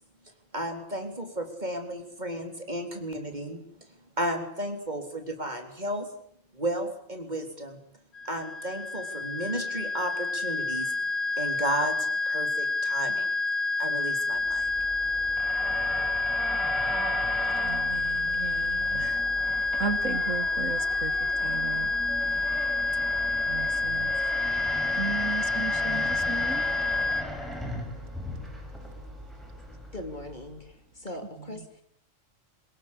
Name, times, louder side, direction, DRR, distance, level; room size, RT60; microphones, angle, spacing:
voice 1, 0.5-3.6 4.2-6.1 6.5-7.8 8.3-10.9 11.4-13.3 13.8-14.7, right 1 dB, 35° right, 5 dB, 3.9 m, -33 dB
sound 1, 8.1-27.2, left 3 dB, 75° left, 1.9 m, -28 dB
sound 2, 14.4-30.7, equal, ahead, 6.8 m, -38 dB
voice 2, 17.6-19.3 19.7-21.9 22.2-22.7 23.5-24.2 24.9-26.6 31.4-31.7, right 5 dB, 80° right, 12 dB, 2.0 m, -36 dB
voice 3, 29.9-31.8, left 1 dB, 35° left, 6 dB, 3.4 m, -40 dB
24.0 x 20.5 x 8.5 m, 0.67 s
omnidirectional pair, 1.3 m